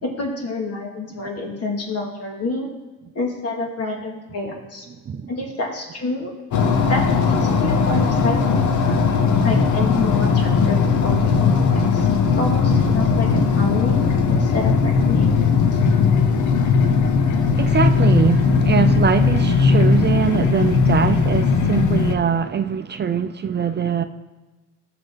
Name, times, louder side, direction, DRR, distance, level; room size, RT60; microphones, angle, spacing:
voice 1, 0.0-2.7 3.1-4.8 5.3-6.3 6.9-9.0 9.4-12.1 12.4-15.3, left 2 dB, 55° left, 0 dB, 2.6 m, -28 dB
sound 1, 6.5-22.1, left 5 dB, 75° left, 1.0 m, -18 dB
voice 2, 17.5-24.0, right 7 dB, 35° right, 9 dB, 0.6 m, -22 dB
15.0 x 5.8 x 4.0 m, 1.2 s
cardioid pair, 90°, 30 cm